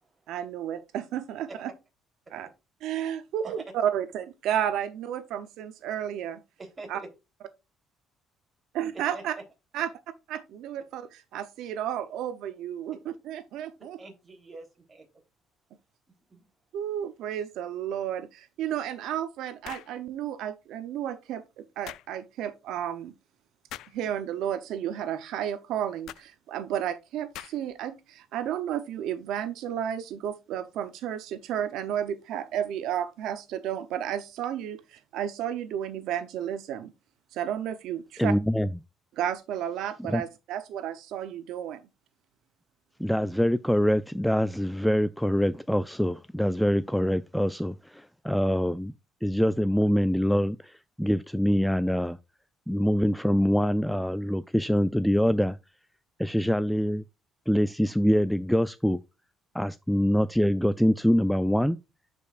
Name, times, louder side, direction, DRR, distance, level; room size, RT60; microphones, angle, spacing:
voice 1, 0.3-1.7 2.3-2.5 2.8-6.4 6.9-7.0 8.7-9.3 9.7-9.9 10.3-14.0 16.7-23.1 23.9-36.9 37.3-38.3 39.1-41.8, right 10 dB, 75° right, 0.8 m, -32 dB
voice 2, 6.6-7.1 8.9-9.2 14.0-15.1 16.3-16.5, right 3 dB, 25° right, 3.5 m, -44 dB
sound 1, 19.6-20.0 21.9-22.1 23.7-24.0 26.1-26.3 27.3-27.7, left 13 dB, 75° left, 0.4 m, -42 dB
voice 3, 38.2-38.7 40.1-40.2 43.0-48.9 49.2-52.2 52.7-55.6 56.2-57.0 57.5-59.0 59.5-61.8, equal, ahead, 0.3 m, -24 dB
11.0 x 5.3 x 2.5 m
cardioid pair, 110°, 0 cm